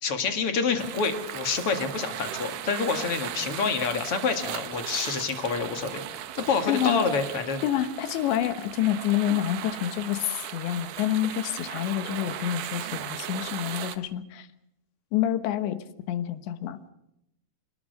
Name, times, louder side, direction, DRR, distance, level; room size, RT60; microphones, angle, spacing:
voice 1, 0.0-7.6, left 5 dB, 45° left, 6 dB, 2.0 m, -27 dB
sound 1, 0.8-14.0, right 12 dB, 80° right, 1.8 m, -37 dB
voice 2, 6.7-7.0 7.6-14.5 15.1-15.8 16.1-16.8, left 12 dB, 85° left, 10 dB, 3.5 m, -28 dB
26.0 x 19.5 x 6.6 m, 0.83 s
omnidirectional pair, 5.0 m